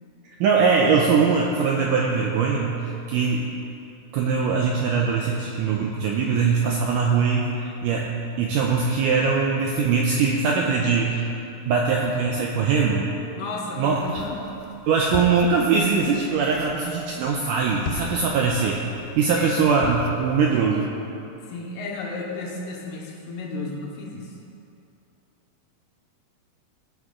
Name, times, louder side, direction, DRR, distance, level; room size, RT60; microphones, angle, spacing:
voice 1, 0.4-3.5 4.1-8.1 8.4-11.3 11.7-13.1 13.8-14.0 14.9-18.8 19.2-20.9, right 5 dB, 85° right, -1 dB, 1.8 m, -21 dB
voice 2, 13.4-14.5 19.3-19.7 21.5-24.4, left 3 dB, 75° left, 0 dB, 2.4 m, -33 dB
sound 1, 13.9-20.9, left 6 dB, 90° left, 2.7 m, -39 dB
17.5 x 6.2 x 3.7 m, 2.7 s
omnidirectional pair, 4.4 m